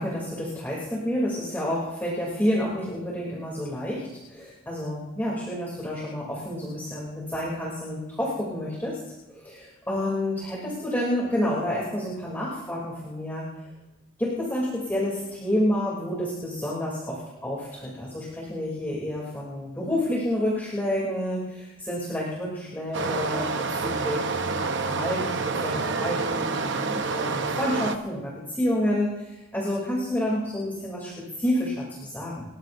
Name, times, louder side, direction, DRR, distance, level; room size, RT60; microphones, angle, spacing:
voice 1, 0.0-9.0 9.3-13.5 14.2-31.8 32.1-32.4, left 1 dB, 10° left, -6 dB, 3.0 m, -29 dB
Stream, 22.9-28.0, right 4 dB, 55° right, 0.9 m, -28 dB
29.5 x 14.5 x 2.6 m, 1.1 s
head